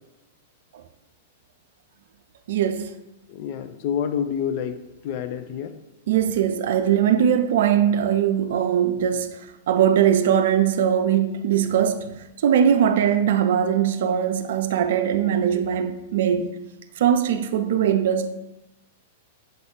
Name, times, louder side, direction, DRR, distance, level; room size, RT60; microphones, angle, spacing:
voice 1, 2.5-2.9 6.1-12.1 12.4-16.5 17.0-18.3, right 9 dB, 65° right, 0.5 m, -21 dB
voice 2, 3.3-4.8 5.0-5.7, left 8 dB, 50° left, 0.5 m, -28 dB
6.9 x 3.8 x 3.7 m
hypercardioid pair, 105°, 0 cm